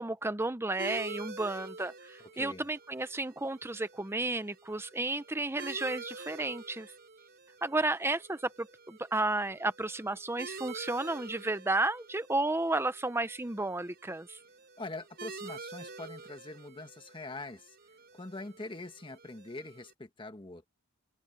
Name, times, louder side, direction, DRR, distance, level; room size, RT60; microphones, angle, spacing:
voice 1, 0.0-6.9 7.6-14.4, right 2 dB, 10° right, 0.7 m, -32 dB
sound 1, 0.8-19.9, right 3 dB, 50° right, 4.7 m, -48 dB
voice 2, 2.2-2.7 14.8-17.8 18.1-20.7, left 2 dB, 25° left, 1.5 m, -43 dB
head